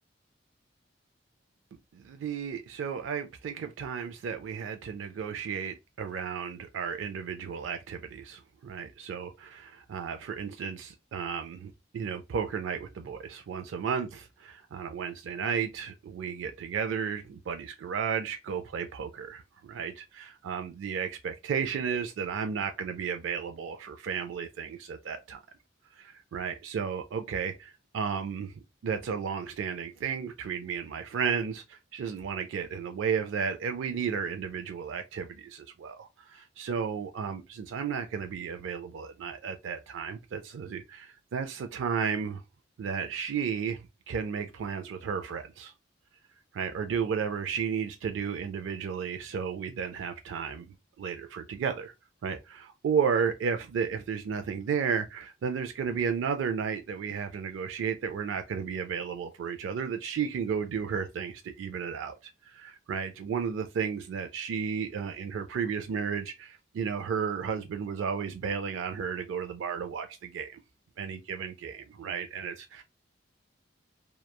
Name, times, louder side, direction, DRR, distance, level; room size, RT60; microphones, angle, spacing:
voice 1, 1.9-25.4 26.0-28.5 28.8-42.4 42.8-45.7 46.5-50.7 51.0-51.9 52.2-70.6 71.0-72.8, right 6 dB, 80° right, 0.3 m, -33 dB
2.9 x 2.2 x 2.2 m
head